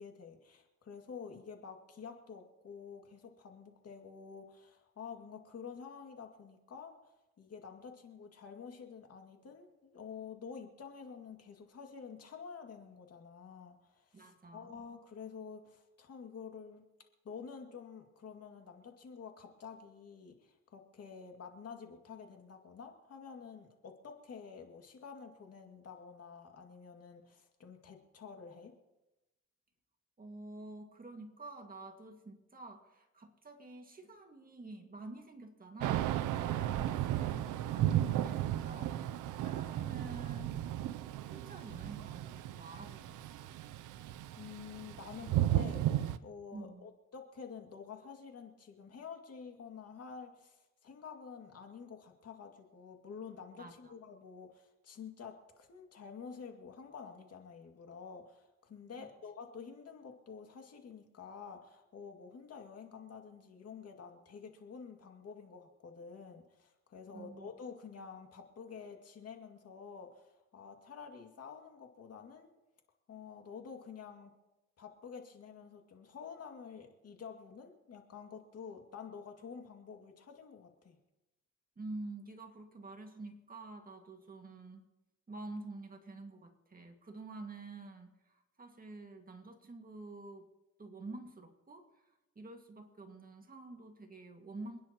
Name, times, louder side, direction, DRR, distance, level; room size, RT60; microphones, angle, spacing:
voice 1, 0.0-16.8 17.2-28.7 44.4-72.5 73.1-74.3 74.8-81.0, left 6 dB, 55° left, 3 dB, 2.2 m, -49 dB
voice 2, 14.1-14.8 30.2-43.6 46.5-46.9 53.6-53.9 59.0-59.1 67.1-67.5 81.8-84.8 85.3-90.5 90.8-94.8, right 2 dB, 30° right, 4 dB, 1.9 m, -49 dB
Thunder / Rain, 35.8-46.2, right 12 dB, 85° right, 0.6 m, -34 dB
28.0 x 10.0 x 3.0 m, 1.0 s
cardioid pair, 90°, 30 cm